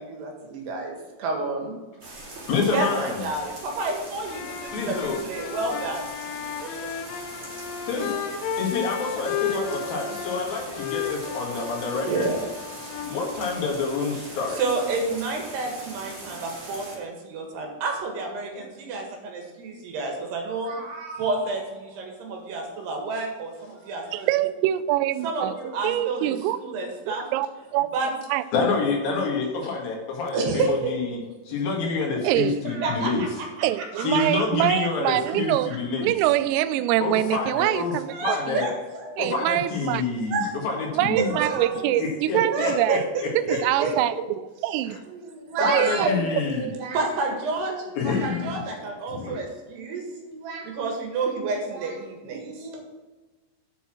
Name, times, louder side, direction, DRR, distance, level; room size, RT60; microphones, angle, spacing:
voice 1, 0.0-1.7 2.7-6.0 6.6-6.7 9.8-10.3 12.1-12.4 14.5-24.3 25.2-27.3 27.9-28.1 30.3-30.9 31.9-32.0 32.6-33.3 33.8-34.2 38.1-39.2 40.3-40.5 41.1-42.0 42.5-44.3 45.0-52.8, right 3 dB, 65° right, 1 dB, 3.3 m, -30 dB
sound 1, 2.0-17.0, right 2 dB, 35° right, 2.7 m, -41 dB
voice 2, 2.5-3.2 4.7-5.2 7.9-8.2 8.6-12.3 13.0-14.6 28.5-31.2 31.5-33.2 33.9-36.1 37.0-38.7 39.2-41.4 42.0-43.6 44.9-45.0 45.6-46.7 48.0-48.6 49.1-49.3, left 4 dB, 55° left, 0 dB, 3.0 m, -27 dB
sound 2, 4.2-14.0, left 8 dB, 80° left, 3.0 m, -34 dB
voice 3, 24.1-25.5 25.8-26.6 27.1-27.5 27.7-27.9 28.3-28.4 32.2-32.6 33.6-35.7 36.0-38.6 39.2-40.0 41.0-43.0 43.4-45.0 45.6-46.1, right 14 dB, 85° right, 13 dB, 3.2 m, -24 dB
8.1 x 7.0 x 6.2 m, 1.2 s
omnidirectional pair, 5.9 m